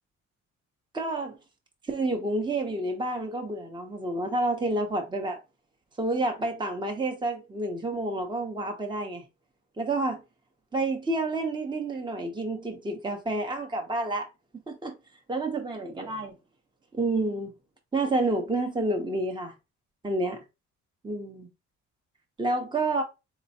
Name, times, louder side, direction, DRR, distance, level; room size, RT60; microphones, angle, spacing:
voice 1, 0.9-1.4 1.9-5.4 6.0-9.2 9.8-10.2 10.7-14.3 14.7-15.0 15.3-16.4 16.9-17.5 17.9-19.5 20.0-20.4 21.0-21.5 22.4-23.0, right 2 dB, 15° right, 0.9 m, -29 dB
4.2 x 3.0 x 2.8 m
cardioid pair, 90°, 30 cm